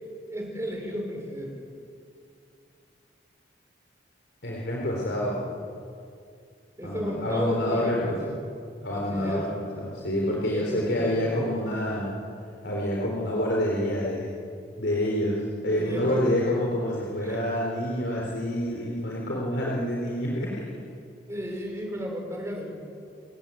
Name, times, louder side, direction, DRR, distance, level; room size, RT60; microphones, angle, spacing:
voice 1, 0.3-1.7 6.8-8.4 8.9-9.5 10.5-11.6 15.7-16.3 17.2-17.4 21.3-22.7, equal, 15° right, 1 dB, 5.2 m, -34 dB
voice 2, 4.4-5.5 6.8-8.2 8.8-12.1 12.6-14.3 14.8-20.6, left 1 dB, 70° left, -3 dB, 4.0 m, -27 dB
30.0 x 16.0 x 9.2 m, 2.4 s
head